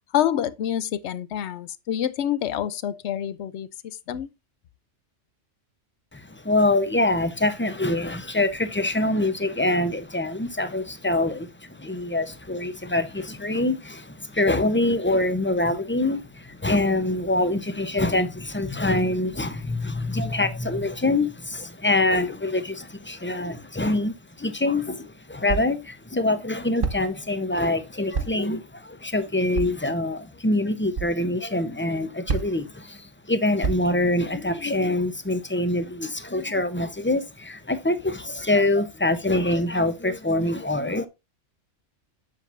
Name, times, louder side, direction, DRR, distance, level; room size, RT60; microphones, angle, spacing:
voice 1, 0.0-4.3, left 10 dB, 70° left, 0.9 m, -27 dB
voice 2, 6.1-41.1, left 2 dB, 15° left, 0.4 m, -25 dB
sound 1, 24.4-24.5 25.5-25.9 26.8-27.2 28.1-28.5 29.5-29.9 30.9-31.2 32.3-32.7 33.6-34.1, right 5 dB, 50° right, 1.0 m, -29 dB
7.6 x 7.2 x 2.5 m
omnidirectional pair, 1.3 m